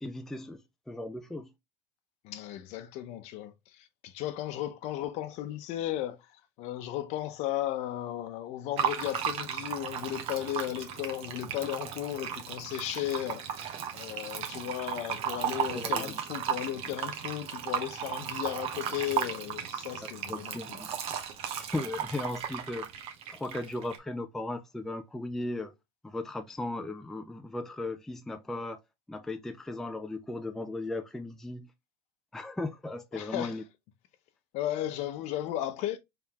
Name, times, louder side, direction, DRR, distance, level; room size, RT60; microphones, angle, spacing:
voice 1, 0.0-0.6 0.9-1.5 15.7-16.1 20.0-20.9 21.6-22.9 23.3-25.7 26.0-28.8 29.1-31.7 32.3-33.6, left 2 dB, 5° left, 0.3 m, -37 dB
voice 2, 2.2-20.8 33.1-33.6 34.5-36.0, left 13 dB, 55° left, 0.7 m, -35 dB
Fill (with liquid), 8.8-24.0, right 8 dB, 45° right, 0.9 m, -35 dB
3.7 x 3.4 x 2.9 m
supercardioid pair, 120°, 14 cm